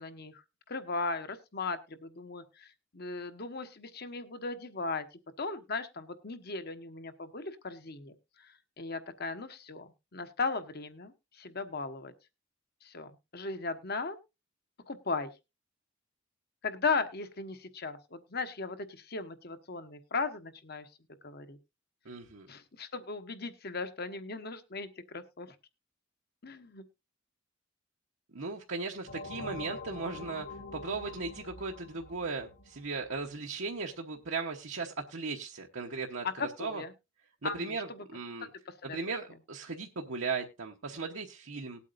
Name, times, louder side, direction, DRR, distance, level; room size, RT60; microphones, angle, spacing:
voice 1, 0.0-12.1 12.8-14.2 14.9-15.3 16.6-20.9 21.2-21.6 22.5-25.5 26.4-26.9 36.2-36.9 37.4-38.1 38.7-39.0, left 4 dB, 50° left, 9 dB, 1.2 m, -37 dB
voice 2, 22.0-22.5 28.3-36.3 36.6-36.8 37.4-38.5 38.8-41.8, right 4 dB, 70° right, 1 dB, 1.1 m, -37 dB
sound 1, 29.1-33.5, left 3 dB, 85° left, 2.4 m, -45 dB
19.5 x 8.3 x 2.6 m, 0.26 s
head